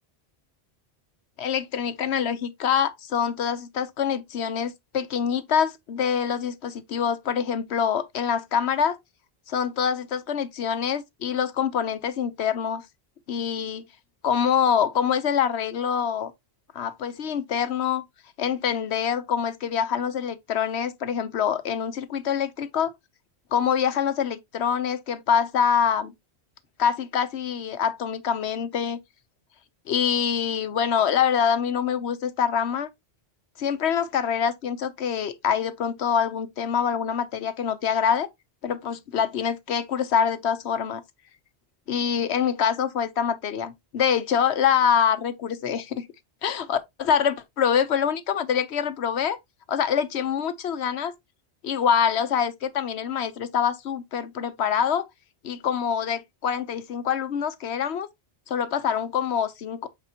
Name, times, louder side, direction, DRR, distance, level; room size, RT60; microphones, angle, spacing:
voice 1, 1.4-9.0 9.5-12.8 13.3-13.8 14.2-16.3 16.7-18.0 18.4-22.9 23.5-26.1 26.8-29.0 29.9-32.9 33.6-38.3 38.6-41.0 41.9-46.0 46.4-49.4 49.7-51.1 51.6-55.1 55.4-58.1 58.5-59.9, left 7 dB, 90° left, 1.1 m, -25 dB
8.3 x 4.2 x 2.8 m
omnidirectional pair, 1.1 m